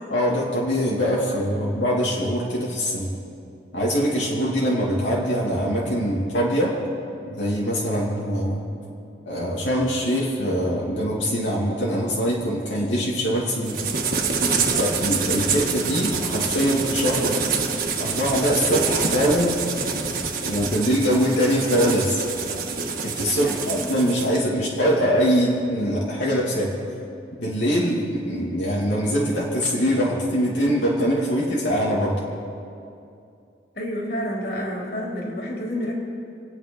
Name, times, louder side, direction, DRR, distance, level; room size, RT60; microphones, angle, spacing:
voice 1, 0.1-3.1 3.7-6.8 7.3-8.7 9.3-13.8 14.8-17.4 18.0-19.6 20.4-22.2 23.0-26.8 27.3-32.2, equal, 80° left, -5 dB, 2.7 m, -23 dB
sound 1, 13.6-24.4, right 5 dB, 50° right, 1.6 m, -26 dB
voice 2, 23.4-23.9 33.8-35.9, equal, 55° left, -2 dB, 3.4 m, -29 dB
27.5 x 9.5 x 5.4 m, 2.6 s
head